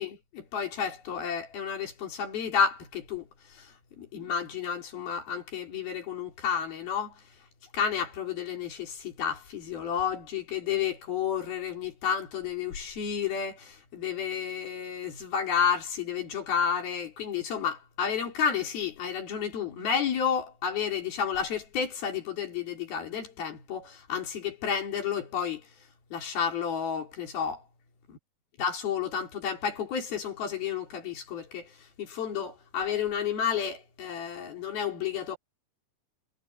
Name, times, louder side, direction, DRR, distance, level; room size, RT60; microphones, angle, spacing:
voice 1, 0.0-7.2 7.7-25.7 26.1-27.6 28.1-28.2 28.6-35.4, left 7 dB, 75° left, 5.8 m, -31 dB
omnidirectional pair, 4.3 m